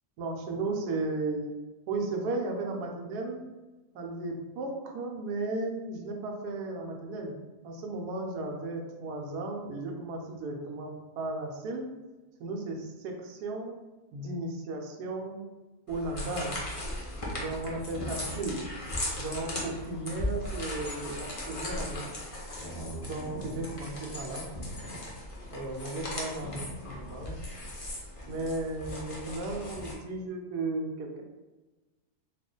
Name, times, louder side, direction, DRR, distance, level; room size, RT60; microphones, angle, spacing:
voice 1, 0.2-1.5 1.9-3.4 3.9-7.3 7.6-11.9 12.4-13.8 14.1-15.5 15.9-16.7 17.4-18.6 19.2-22.1 23.0-24.5 25.5-27.4 28.3-31.2, right 2 dB, 80° right, 2 dB, 1.2 m, -35 dB
sound 1, 15.9-29.9, left 1 dB, 55° left, 0.3 m, -37 dB
2.9 x 2.4 x 3.7 m, 1.2 s
omnidirectional pair, 1.7 m